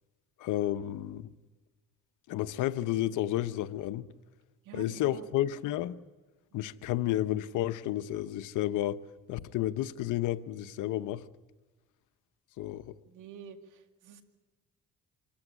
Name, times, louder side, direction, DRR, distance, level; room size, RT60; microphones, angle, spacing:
voice 1, 0.4-1.3 2.3-4.1 4.7-5.9 6.5-9.0 9.3-11.2 12.6-12.9, left 13 dB, 90° left, 0.8 m, -31 dB
voice 2, 4.6-5.3 6.5-6.7 13.1-14.2, right 7 dB, 85° right, 2.2 m, -48 dB
26.0 x 14.5 x 9.9 m
cardioid pair, 90°, 30 cm